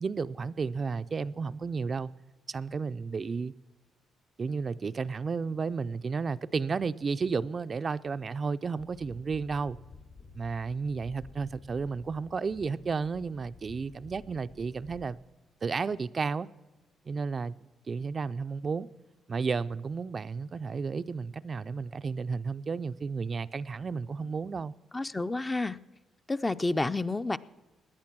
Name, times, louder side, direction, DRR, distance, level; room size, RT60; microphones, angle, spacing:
voice 1, 0.0-2.1 2.5-3.5 4.4-9.8 10.3-15.2 15.6-16.5 17.1-17.6 17.9-18.9 19.3-24.7, right 5 dB, 40° right, 0.4 m, -32 dB
sound 1, 8.8-15.0, left 4 dB, 75° left, 2.9 m, -52 dB
voice 2, 24.9-25.8 26.3-27.4, left 2 dB, 20° left, 0.5 m, -29 dB
17.5 x 10.5 x 6.0 m
cardioid pair, 90°, 0 cm